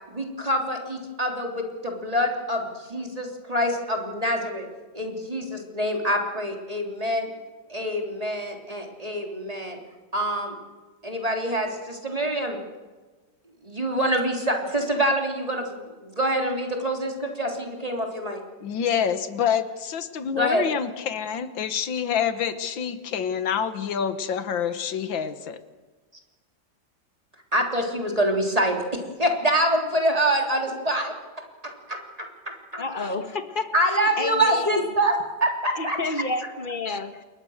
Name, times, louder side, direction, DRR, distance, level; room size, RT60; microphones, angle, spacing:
voice 1, 0.1-4.7 4.9-7.3 7.7-9.8 10.1-10.6 11.0-12.6 13.6-18.4 20.3-20.7 27.5-31.1 31.6-32.3 32.7-33.1 33.7-36.0, right 1 dB, 20° right, 3.6 m, -26 dB
voice 2, 18.6-25.6, left 8 dB, 90° left, 2.0 m, -27 dB
voice 3, 32.8-34.7 35.8-37.2, left 2 dB, 30° left, 1.6 m, -30 dB
29.5 x 21.5 x 6.6 m
omnidirectional pair, 2.0 m